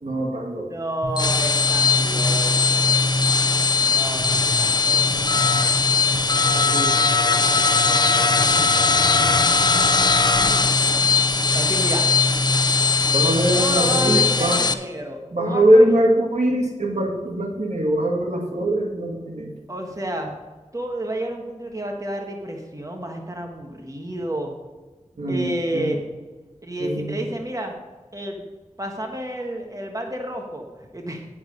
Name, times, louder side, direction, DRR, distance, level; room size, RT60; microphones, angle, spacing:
voice 1, 0.0-0.7 6.5-6.9 8.5-8.7 13.1-14.6 15.3-19.5 25.2-26.0 26.8-27.1, right 1 dB, 65° right, 1 dB, 1.8 m, -21 dB
voice 2, 0.6-3.0 3.8-5.8 6.2-6.6 10.4-11.0 11.5-12.1 13.5-16.0 19.7-20.3 20.7-24.5 25.3-26.0 26.6-27.7 28.1-28.4 28.8-30.7 30.9-31.3, right 1 dB, 25° right, 2 dB, 1.6 m, -31 dB
sound 1, 1.0-14.7, left 4 dB, 35° left, 0.7 m, -19 dB
9.3 x 7.3 x 5.3 m, 1.3 s
cardioid pair, 40°, 13 cm